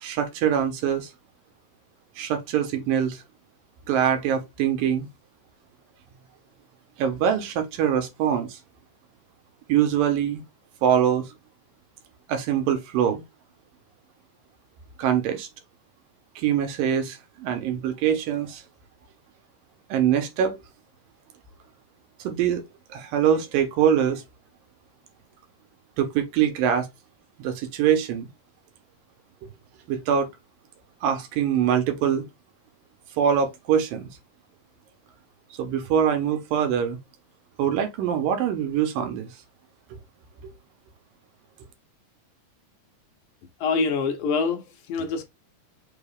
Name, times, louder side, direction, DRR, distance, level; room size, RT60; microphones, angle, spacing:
voice 1, 0.0-1.1 2.2-3.2 3.9-5.1 7.0-8.6 9.7-10.4 10.8-11.3 12.3-13.2 15.0-15.5 16.4-18.6 19.9-20.6 22.2-22.6 22.9-24.2 26.0-26.9 27.4-28.3 29.9-30.3 31.0-32.2 33.2-34.1 35.6-37.0 37.6-39.3 40.4-40.5, right 9 dB, 85° right, 2.7 m, -23 dB
voice 2, 43.6-45.2, left 4 dB, 70° left, 2.0 m, -25 dB
5.9 x 2.4 x 3.4 m
omnidirectional pair, 3.9 m